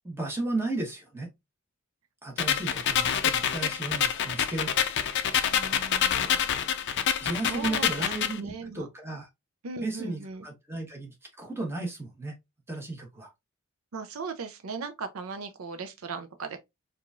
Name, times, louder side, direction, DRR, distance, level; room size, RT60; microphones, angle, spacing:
voice 1, 0.0-1.3 2.2-5.0 7.2-9.3 9.8-12.3 12.7-13.3, right 2 dB, 10° right, 1.1 m, -34 dB
sound 1, 2.4-8.4, left 9 dB, 55° left, 0.5 m, -27 dB
voice 2, 5.5-6.4 7.4-8.9 9.6-10.4 13.9-16.6, right 4 dB, 70° right, 0.5 m, -38 dB
4.7 x 2.5 x 2.3 m
head